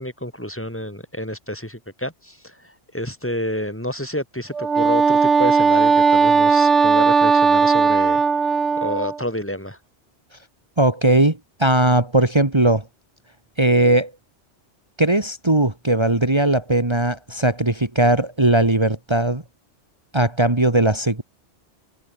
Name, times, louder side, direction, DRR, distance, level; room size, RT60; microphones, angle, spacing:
voice 1, 0.0-8.2 8.8-9.8, equal, 10° left, 5.9 m, -29 dB
Wind instrument woodwind instrument, 4.5-9.2, right 5 dB, 90° right, 2.2 m, -17 dB
voice 2, 10.8-12.8 13.6-14.1 15.0-19.4 20.1-21.2, right 2 dB, 25° right, 2.2 m, -18 dB
omnidirectional pair, 1.2 m